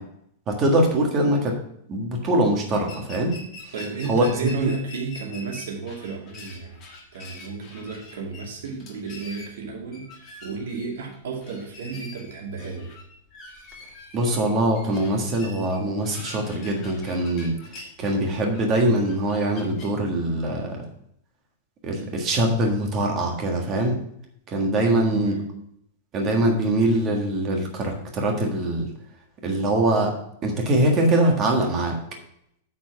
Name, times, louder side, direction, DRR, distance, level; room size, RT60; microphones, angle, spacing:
voice 1, 0.5-1.6 1.9-3.4 3.6-3.7 4.1-4.2 4.6-4.7 14.1-17.5 18.0-20.9 21.8-24.0 24.5-25.3 26.1-28.9 29.4-32.0, right 1 dB, 25° right, 2 dB, 1.6 m, -23 dB
sound 1, 2.8-19.9, left 2 dB, 25° left, 1.6 m, -44 dB
voice 2, 3.7-6.8 7.1-10.1 10.4-12.9 24.8-25.6, right 5 dB, 75° right, -1 dB, 2.3 m, -33 dB
8.8 x 4.5 x 5.8 m, 0.72 s
supercardioid pair, 170°, 0 cm